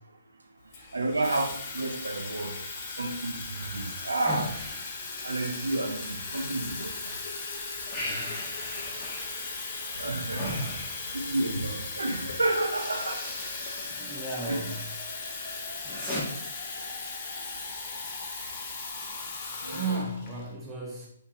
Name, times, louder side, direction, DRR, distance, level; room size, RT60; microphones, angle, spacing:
Water tap faucet / Fill (with liquid), 0.7-20.5, left 4 dB, 35° left, 0.7 m, -38 dB
voice 1, 0.9-2.5 3.0-4.5 5.2-6.9 10.0-10.5 11.1-13.2 14.5-14.6 19.6-20.0, right 2 dB, 85° right, 3 dB, 0.5 m, -30 dB
sound 1, 3.5-7.2 7.5-11.6 12.2-12.3 12.6-14.0 14.3-14.9 15.3-16.2, left 1 dB, 10° left, 1.2 m, -39 dB
voice 2, 14.0-14.7 19.6-21.1, right 3 dB, 10° right, -6 dB, 0.9 m, -34 dB
4.4 x 2.7 x 2.8 m, 0.68 s
figure-of-eight pair, 135°, 0 cm